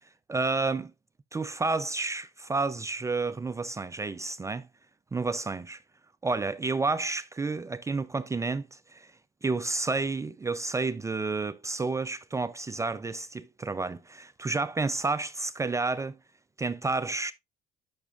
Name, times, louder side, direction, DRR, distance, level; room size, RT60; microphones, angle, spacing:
voice 1, 0.3-0.9 1.3-4.7 5.1-5.8 6.2-9.1 9.4-16.2 16.6-17.3, right 3 dB, 15° right, 0.4 m, -30 dB
10.5 x 6.0 x 2.4 m
cardioid pair, 110°, 17 cm